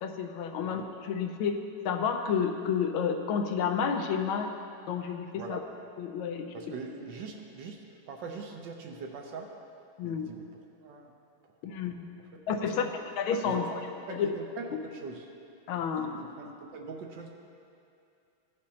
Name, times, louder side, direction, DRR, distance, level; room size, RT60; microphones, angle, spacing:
voice 1, 0.0-1.6 1.8-4.5 4.9-5.6 6.0-6.5 10.0-10.3 11.6-12.1 12.5-12.9 13.2-13.7 14.1-14.3 15.7-16.1, left 7 dB, 85° left, 5 dB, 1.5 m, -30 dB
voice 2, 6.5-9.5 10.0-11.1 11.7-11.9 12.6-12.9 13.4-13.7 14.1-15.3 16.0-17.3, right 4 dB, 70° right, 2 dB, 1.3 m, -42 dB
15.5 x 5.2 x 2.8 m, 2.6 s
omnidirectional pair, 2.2 m